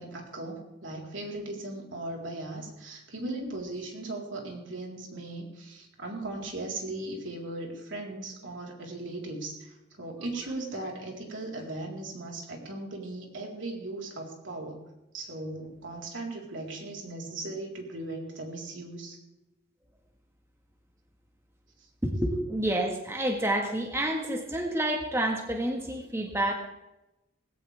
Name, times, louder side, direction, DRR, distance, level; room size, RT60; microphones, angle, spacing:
voice 1, 0.0-14.8 15.1-19.2, right 2 dB, 75° right, -1 dB, 4.1 m, -38 dB
voice 2, 22.0-26.5, right 1 dB, 15° right, 2 dB, 1.6 m, -29 dB
19.5 x 16.5 x 3.5 m, 0.93 s
head